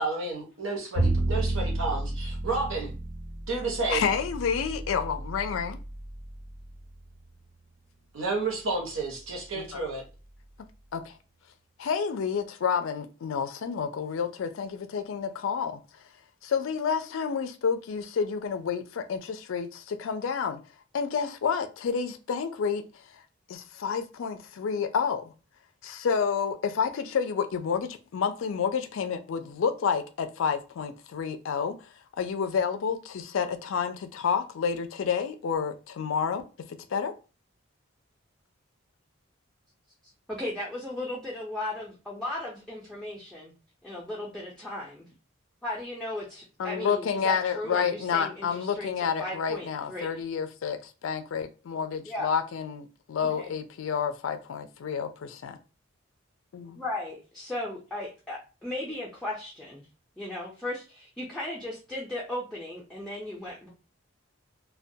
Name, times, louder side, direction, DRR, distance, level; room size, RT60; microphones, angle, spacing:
voice 1, 0.0-2.0 2.4-2.9 3.5-4.1 8.1-10.0, right 3 dB, 70° right, 0.8 m, -30 dB
Bowed string instrument, 0.9-7.1, right 2 dB, 90° right, 1.1 m, -32 dB
voice 2, 3.9-5.8 9.5-9.7 10.9-11.1 11.8-15.8 16.4-20.6 20.9-22.8 23.5-25.3 25.8-31.8 32.2-36.4 36.9-37.1 46.6-55.6 56.5-56.8, left 6 dB, 70° left, 0.3 m, -29 dB
voice 3, 40.3-43.5 43.8-45.1 45.6-48.9 49.2-50.1 52.1-52.3 53.2-53.5 56.8-59.9 60.2-63.7, left 1 dB, ahead, 0.4 m, -36 dB
2.2 x 2.1 x 2.6 m
head